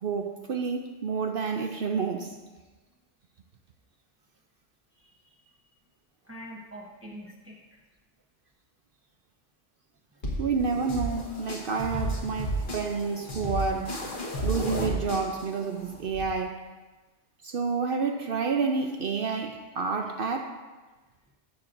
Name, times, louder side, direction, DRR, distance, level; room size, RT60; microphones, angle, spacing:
voice 1, 0.0-2.4 10.4-14.0 14.4-16.6 17.4-20.5, right 5 dB, 60° right, 5 dB, 0.7 m, -29 dB
voice 2, 4.9-5.5 6.2-7.8, equal, 15° right, -4 dB, 0.8 m, -45 dB
sound 1, 10.2-16.2, right 1 dB, 45° left, 1.3 m, -33 dB
13.5 x 7.3 x 2.6 m, 1.2 s
omnidirectional pair, 1.2 m